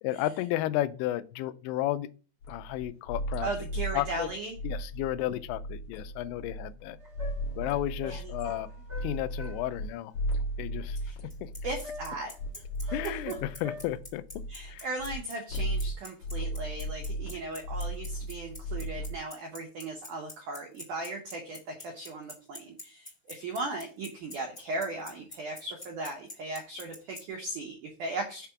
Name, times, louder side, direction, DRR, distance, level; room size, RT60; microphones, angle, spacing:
voice 1, 0.0-2.1 2.5-3.5 3.9-4.3 4.6-7.0 7.6-8.7 9.0-10.1 10.6-11.0 11.4-11.5 12.9-14.2 14.7-14.9, left 14 dB, 85° left, 12 dB, 2.8 m, -32 dB
sound 1, 2.4-9.9 10.1-15.2 15.5-19.2, right 1 dB, 60° left, 2.6 m, -36 dB
voice 2, 3.4-4.6 8.1-8.3 11.0-11.1 11.6-12.3 12.8-13.3 14.5-28.5, right 2 dB, 85° right, 1 dB, 1.7 m, -37 dB
sound 2, 7.0-9.6 11.8-12.3 12.9-13.9, left 2 dB, 15° right, 1.3 m, -45 dB
Bicycle, 11.3-27.2, left 2 dB, 10° left, 2.3 m, -44 dB
6.6 x 3.6 x 5.7 m, 0.35 s
omnidirectional pair, 5.2 m